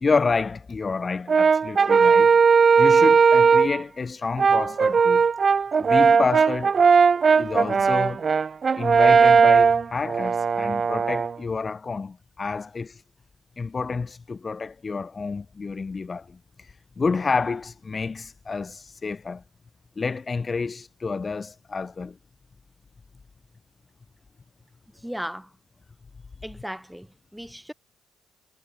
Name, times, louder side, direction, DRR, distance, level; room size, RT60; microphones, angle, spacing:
voice 1, 0.0-2.3 2.8-5.2 5.8-6.7 7.4-8.2 8.8-13.0 13.6-19.4 20.0-22.2, left 4 dB, 30° left, 0.4 m, -29 dB
Brass instrument, 1.3-3.8 4.4-11.3, right 5 dB, 40° right, 0.4 m, -18 dB
voice 2, 24.9-25.5 26.4-27.7, equal, ahead, 4.0 m, -36 dB
cardioid pair, 90°, 0 cm